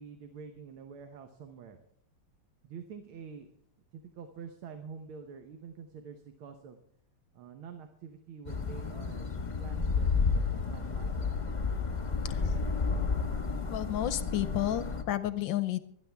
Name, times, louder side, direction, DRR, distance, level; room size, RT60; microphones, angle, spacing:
voice 1, 0.0-1.8 2.6-3.5 3.9-6.8 7.3-9.3 9.6-11.2, right 6 dB, 75° right, 6 dB, 1.8 m, -47 dB
sound 1, 8.5-15.0, left 4 dB, 30° left, 1.0 m, -31 dB
voice 2, 12.2-12.6 13.7-15.8, left 12 dB, 70° left, 13 dB, 1.3 m, -32 dB
24.5 x 9.6 x 3.4 m, 0.68 s
omnidirectional pair, 2.3 m